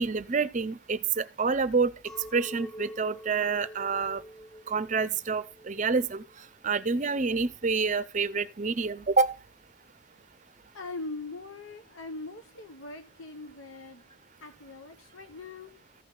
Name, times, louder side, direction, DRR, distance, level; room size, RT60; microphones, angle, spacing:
voice 1, 0.0-1.9 2.3-4.2 4.7-6.2 6.6-9.3, right 4 dB, 40° right, 0.6 m, -27 dB
Chink clink, 2.1-7.5, equal, 5° left, 0.6 m, -47 dB
voice 2, 10.7-16.0, left 3 dB, 80° left, 0.9 m, -42 dB
14.5 x 5.5 x 3.8 m
head